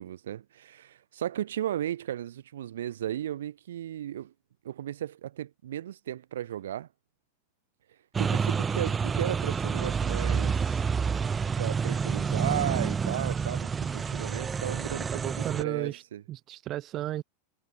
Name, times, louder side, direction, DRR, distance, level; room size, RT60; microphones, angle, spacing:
voice 1, 0.0-4.3 4.6-6.9 8.2-10.8 11.6-16.2, right 11 dB, 60° right, 0.7 m, -35 dB
sound 1, 8.1-15.6, right 6 dB, 15° right, 1.4 m, -28 dB
voice 2, 15.1-16.0 16.3-17.2, right 14 dB, 35° right, 1.6 m, -34 dB
figure-of-eight pair, 90°, 0 cm